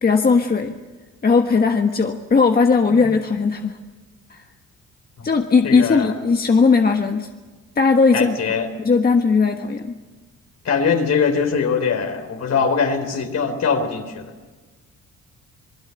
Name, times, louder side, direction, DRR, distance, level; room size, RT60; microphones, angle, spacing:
voice 1, 0.0-0.8 1.2-3.8 4.3-4.4 5.2-7.3 7.8-8.4 8.8-10.0, left 4 dB, 30° left, 4 dB, 1.4 m, -17 dB
voice 2, 5.6-6.1 8.1-8.7 10.6-14.3, left 5 dB, 60° left, 7 dB, 3.8 m, -22 dB
27.5 x 20.0 x 7.8 m, 1.3 s
cardioid pair, 90°, 30 cm